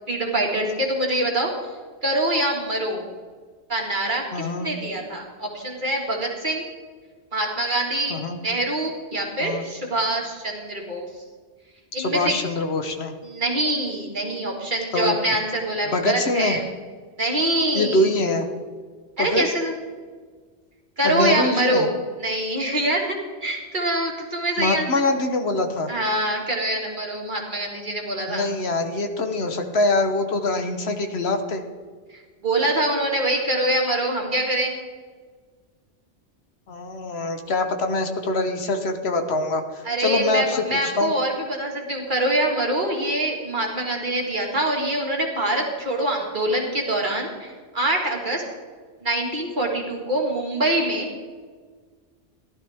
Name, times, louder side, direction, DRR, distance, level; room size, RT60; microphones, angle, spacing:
voice 1, 0.1-1.5 2.0-3.0 3.7-6.7 7.3-11.1 11.9-12.3 13.2-16.6 17.2-18.1 19.2-19.7 21.0-21.9 22.2-24.9 25.9-28.5 32.4-34.7 39.9-48.4 49.0-51.1, right 1 dB, 45° right, 0 dB, 2.1 m, -24 dB
voice 2, 4.3-4.7 8.1-8.4 9.4-9.6 12.0-13.1 14.9-15.1 15.9-16.6 17.7-18.5 19.2-19.4 21.0-21.9 24.6-25.9 28.3-31.6 36.7-41.1, left 2 dB, 65° left, 6 dB, 1.3 m, -24 dB
15.0 x 12.0 x 3.5 m, 1.5 s
omnidirectional pair, 1.2 m